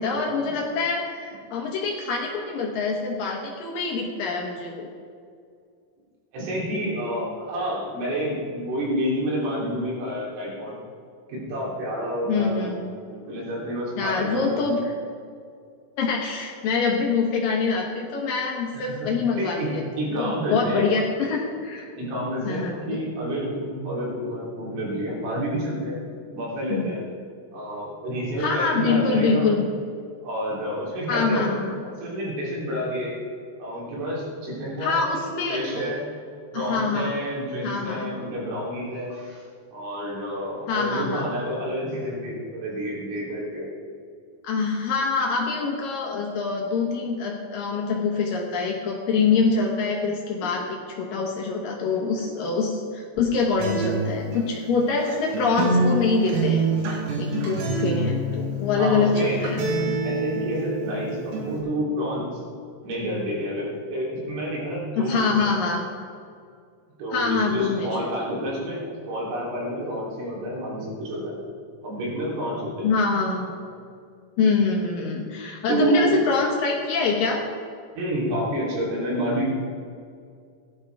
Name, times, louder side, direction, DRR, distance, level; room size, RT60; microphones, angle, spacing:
voice 1, 0.0-4.9 12.3-12.9 14.0-15.0 16.0-19.8 20.1-21.9 22.4-23.0 26.7-26.9 28.4-29.7 31.1-31.8 34.8-35.9 36.5-37.1 37.6-38.1 40.7-41.3 44.4-56.6 57.2-59.7 65.0-65.8 67.1-68.1 72.8-73.5 74.4-77.4, left 4 dB, 90° left, -1 dB, 1.9 m, -25 dB
voice 2, 6.3-10.8 11.3-14.7 18.7-19.7 20.0-20.9 21.9-26.0 26.3-27.0 27.5-29.5 30.2-31.5 32.0-33.1 33.6-35.0 35.5-36.0 36.5-39.4 39.7-43.7 58.7-59.4 60.0-62.4 62.8-65.5 67.0-71.4 71.8-72.9 75.7-76.2 77.9-79.6, equal, 75° right, -5 dB, 6.2 m, -29 dB
Acoustic guitar, 53.6-61.6, right 2 dB, 90° right, 5.0 m, -26 dB
17.5 x 12.5 x 3.6 m, 2.2 s
omnidirectional pair, 5.8 m